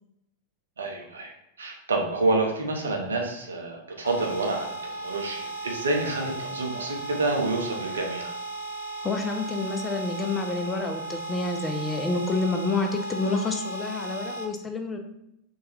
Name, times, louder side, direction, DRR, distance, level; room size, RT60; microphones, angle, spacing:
voice 1, 0.8-1.3 1.6-4.7 5.0-8.3, right 2 dB, 70° right, 1 dB, 0.5 m, -28 dB
sound 1, 4.0-14.4, right 2 dB, 70° left, 0.6 m, -36 dB
voice 2, 9.0-15.0, left 3 dB, 15° left, 4 dB, 0.3 m, -28 dB
2.8 x 2.2 x 3.2 m, 0.81 s
figure-of-eight pair, 90°, 0 cm